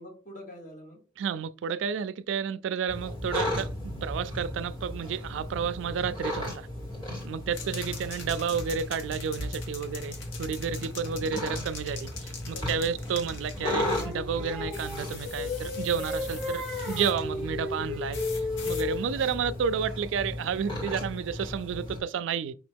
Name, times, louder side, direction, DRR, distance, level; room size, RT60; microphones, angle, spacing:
voice 1, 0.0-1.0 7.5-7.7 11.1-11.3 12.5-12.9 19.1-19.7, left 1 dB, 45° left, 1.5 m, -47 dB
voice 2, 1.2-6.7 7.2-18.2 18.6-22.5, right 6 dB, 70° right, 0.3 m, -31 dB
sound 1, 2.9-22.0, left 1 dB, 25° left, 1.9 m, -36 dB
sound 2, 7.5-14.1 14.7-17.2 18.1-18.9, left 5 dB, 80° left, 1.1 m, -44 dB
Singing, 14.0-19.2, left 3 dB, ahead, 1.2 m, -34 dB
5.0 x 3.0 x 3.3 m
head